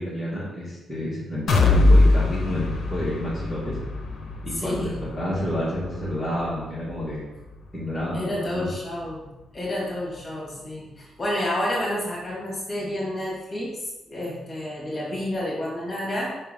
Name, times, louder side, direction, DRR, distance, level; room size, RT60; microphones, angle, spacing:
voice 1, 0.0-3.8 4.4-7.2 7.7-8.7, left 1 dB, 5° left, -9 dB, 2.0 m, -29 dB
sound 1, 1.5-9.3 9.7-9.8 10.2-10.3, left 2 dB, 50° left, 0.9 m, -24 dB
voice 2, 4.5-5.0 8.1-13.8 14.1-16.4, left 1 dB, 25° left, -4 dB, 2.5 m, -30 dB
5.5 x 4.5 x 5.5 m, 0.96 s
cardioid pair, 140°, 0 cm